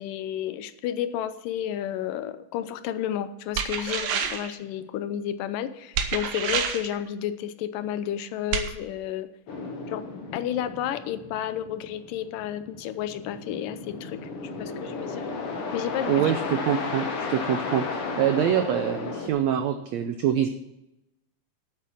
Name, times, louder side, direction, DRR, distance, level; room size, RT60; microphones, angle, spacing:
voice 1, 0.0-9.3 9.9-10.1 10.3-14.2 14.6-15.3 15.7-16.3, left 10 dB, 80° left, 12 dB, 2.2 m, -31 dB
sound 1, 3.6-4.5 5.9-6.9 8.5-8.7, right 7 dB, 65° right, 1.6 m, -28 dB
sound 2, 9.5-19.3, left 4 dB, 55° left, 1.7 m, -34 dB
voice 2, 16.1-20.5, right 10 dB, 90° right, 8 dB, 1.5 m, -25 dB
9.1 x 8.1 x 7.2 m, 0.87 s
omnidirectional pair, 4.0 m